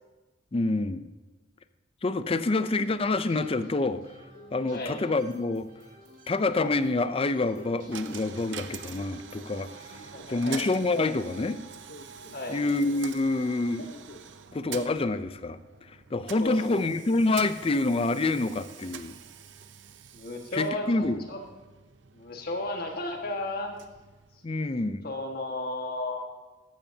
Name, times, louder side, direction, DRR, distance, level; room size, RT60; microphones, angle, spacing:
voice 1, 0.5-1.1 2.0-4.0 4.5-5.7 6.3-9.7 10.3-11.6 12.5-14.0 14.5-15.6 16.1-19.2 20.5-21.2 24.4-25.1, left 2 dB, 30° left, 12 dB, 0.5 m, -27 dB
sound 1, 2.9-10.0, right 1 dB, 50° right, 4.0 m, -54 dB
Telephone, 4.4-4.9 5.4-5.7 6.0-6.9 7.4-12.9 13.2-14.3 14.6-15.0 15.3-15.4 15.7-16.3, left 2 dB, 85° left, 1.0 m, -48 dB
Coin (dropping), 7.9-24.8, right 8 dB, 65° right, 0.6 m, -46 dB
voice 2, 10.1-10.7 12.3-12.6 16.4-16.9 20.1-21.4 22.1-23.7 25.0-26.2, left 2 dB, 55° left, 1 dB, 1.7 m, -34 dB
14.5 x 12.5 x 2.8 m, 1.2 s
head